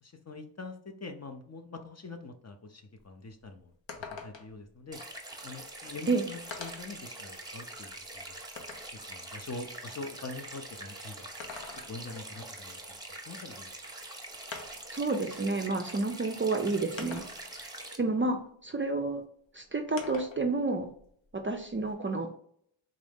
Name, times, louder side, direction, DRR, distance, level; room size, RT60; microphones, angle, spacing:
voice 1, 0.0-3.7 4.0-5.0 5.4-8.4 8.9-11.3 11.9-13.0 13.3-13.7, left 3 dB, 35° left, 6 dB, 0.6 m, -44 dB
sound 1, 3.0-3.1 3.4-3.5 3.9-4.6 5.7-5.8 6.5-7.0 7.6-9.0 11.2-12.2 13.7-13.8 14.5-15.0 16.0-16.1 17.0-17.6 20.0-20.4 20.8-21.9, left 5 dB, 70° left, 0.8 m, -44 dB
sound 2, 4.9-18.0, right 2 dB, 10° right, 0.8 m, -44 dB
voice 2, 14.9-17.2 17.6-17.7 18.0-19.2 19.5-20.9 21.3-22.3, right 3 dB, 30° right, 5 dB, 0.4 m, -30 dB
3.8 x 2.6 x 3.5 m, 0.65 s
wide cardioid pair, 80°, 47 cm